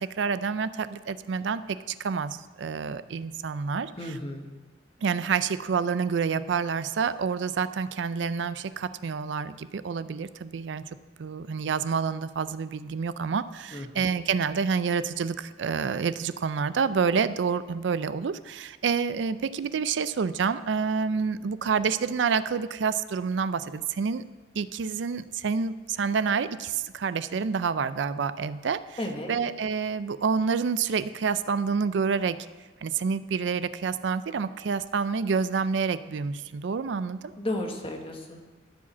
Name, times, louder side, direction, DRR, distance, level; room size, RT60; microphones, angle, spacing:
voice 1, 0.0-4.1 5.0-10.8 11.2-24.2 24.6-29.0 29.3-32.4 32.8-37.3, right 5 dB, 80° right, 14 dB, 0.4 m, -28 dB
voice 2, 4.0-4.5 13.7-14.1 29.0-29.3 37.4-38.5, left 1 dB, 30° left, 2 dB, 1.3 m, -33 dB
14.0 x 4.9 x 7.2 m, 1.2 s
head